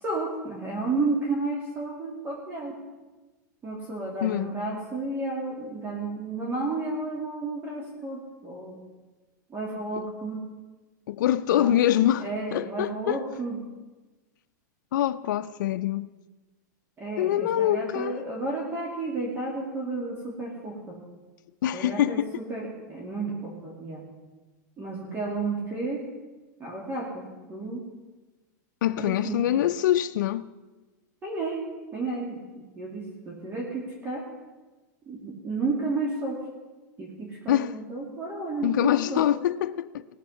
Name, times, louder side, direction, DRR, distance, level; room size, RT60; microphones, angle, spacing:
voice 1, 0.0-2.7 3.6-8.8 9.5-10.4 11.5-13.6 17.0-21.0 21.7-24.0 24.8-26.0 26.6-27.9 29.0-29.4 31.2-34.2 35.1-36.4 37.0-39.3, right 3 dB, 20° right, 2.4 m, -32 dB
voice 2, 11.1-13.2 14.9-16.1 17.2-18.2 21.6-22.3 28.8-30.5 37.5-37.8 38.6-40.0, left 12 dB, 80° left, 0.5 m, -24 dB
19.5 x 7.3 x 5.6 m
supercardioid pair, 150°, 10 cm